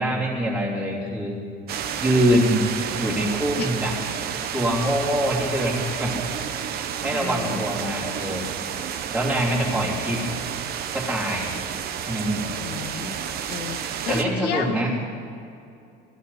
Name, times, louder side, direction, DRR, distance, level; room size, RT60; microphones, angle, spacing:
voice 1, 0.0-1.4 2.0-2.6 3.0-3.9 4.5-6.2 7.0-8.5 9.1-10.2 10.9-11.5 12.0-12.5 14.1-14.9, right 1 dB, 5° right, -6 dB, 3.3 m, -24 dB
sound 1, 1.7-14.2, right 8 dB, 50° right, 1.0 m, -30 dB
voice 2, 7.1-7.7 9.7-9.9 12.6-14.8, left 6 dB, 50° left, 5 dB, 1.6 m, -32 dB
20.5 x 15.0 x 4.2 m, 2.5 s
cardioid pair, 155°, 21 cm